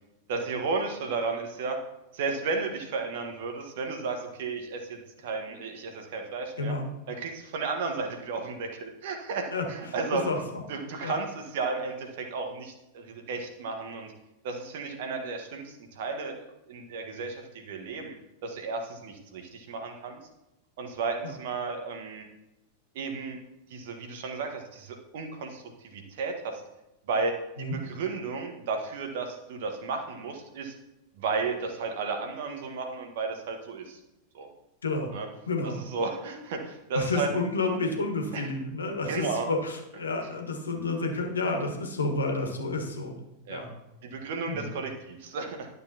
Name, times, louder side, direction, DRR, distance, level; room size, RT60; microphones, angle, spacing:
voice 1, 0.3-1.8 2.1-6.7 7.1-10.3 10.7-14.1 14.4-16.4 16.7-18.1 18.4-20.2 20.8-22.3 22.9-23.4 23.7-26.6 27.1-30.7 31.2-34.0 34.3-34.5 35.1-35.3 35.6-37.3 38.3-38.5 39.1-39.5 43.5-43.6 44.0-45.7, right 4 dB, 55° right, 4 dB, 1.4 m, -33 dB
voice 2, 34.8-35.1 35.5-35.8 36.9-43.1 43.5-43.7 44.5-44.7, left 3 dB, 70° left, 3 dB, 1.5 m, -30 dB
11.5 x 6.8 x 2.9 m, 0.91 s
figure-of-eight pair, 90°, 0 cm